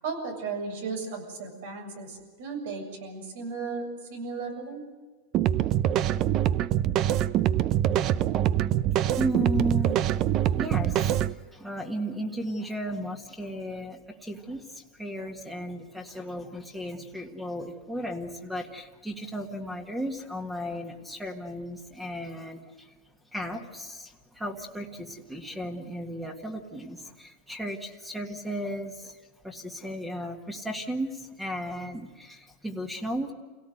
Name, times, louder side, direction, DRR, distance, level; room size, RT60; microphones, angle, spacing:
voice 1, 0.0-3.8 4.1-4.8, right 4 dB, 75° right, 4 dB, 7.4 m, -35 dB
sound 1, 5.3-11.3, right 11 dB, 35° right, 0.6 m, -24 dB
voice 2, 9.2-10.0 10.5-22.9 23.3-29.2 29.4-33.3, equal, 5° right, 3 dB, 1.8 m, -35 dB
28.5 x 17.5 x 8.0 m, 1.4 s
supercardioid pair, 150°, 0 cm